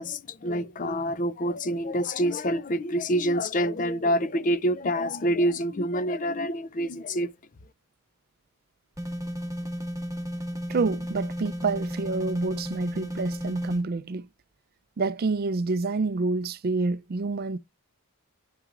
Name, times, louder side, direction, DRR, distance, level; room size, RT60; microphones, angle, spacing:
voice 1, 0.0-7.3, equal, 35° left, 0.4 m, -27 dB
sound 1, 9.0-13.8, equal, 15° right, 1.3 m, -33 dB
voice 2, 10.7-14.3 15.0-17.6, right 3 dB, 45° right, 0.4 m, -28 dB
10.5 x 5.9 x 2.4 m
head